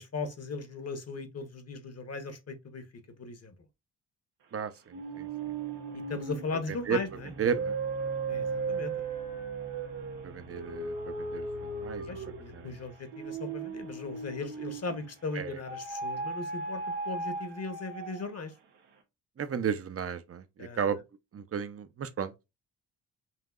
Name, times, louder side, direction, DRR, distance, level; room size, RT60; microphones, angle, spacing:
voice 1, 0.0-3.5 5.9-7.3 8.3-9.0 12.1-18.5 20.6-20.9, left 3 dB, 40° left, 1.1 m, -38 dB
voice 2, 4.5-5.3 6.9-7.0 7.4-7.7 10.2-12.1 12.5-12.7 15.4-15.6 19.4-21.0 21.3-22.3, right 7 dB, 35° right, 0.7 m, -33 dB
sound 1, 4.9-15.1 15.6-18.4, right 4 dB, 80° right, 1.2 m, -37 dB
5.7 x 2.7 x 2.4 m
supercardioid pair, 50°, 40 cm